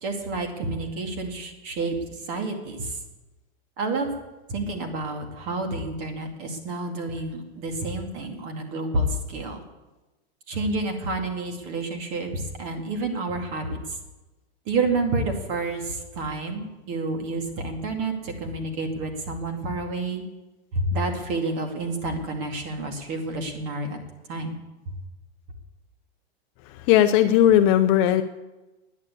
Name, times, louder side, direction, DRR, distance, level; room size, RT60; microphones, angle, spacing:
voice 1, 0.0-3.0 3.8-4.1 4.5-9.6 10.5-13.8 14.7-20.2 20.7-24.0 24.3-24.6, right 2 dB, 40° right, 4 dB, 2.4 m, -29 dB
voice 2, 26.6-28.2, left 11 dB, 30° left, 9 dB, 0.5 m, -18 dB
10.5 x 9.8 x 8.3 m, 1.1 s
supercardioid pair, 150°, 32 cm